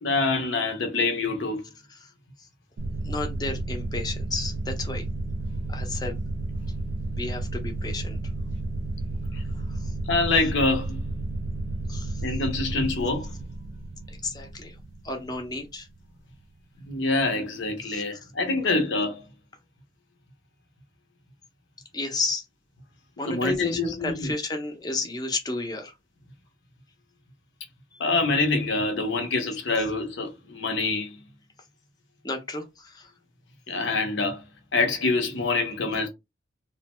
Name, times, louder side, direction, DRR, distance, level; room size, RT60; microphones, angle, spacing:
voice 1, 0.0-1.6 9.3-9.4 10.1-11.0 12.2-13.3 16.9-19.2 23.3-24.3 28.0-31.2 33.7-34.4 34.7-36.1, left 3 dB, 65° left, 0.7 m, -25 dB
sound 1, 2.8-16.0, right 2 dB, 55° right, 0.3 m, -32 dB
voice 2, 3.0-5.0 5.7-6.2 7.1-8.2 9.8-9.9 11.9-12.2 14.1-14.8 15.0-15.9 17.9-18.0 21.9-22.4 23.2-25.9 27.9-28.0 32.2-33.1, left 3 dB, 20° left, 0.5 m, -32 dB
2.5 x 2.1 x 3.0 m
head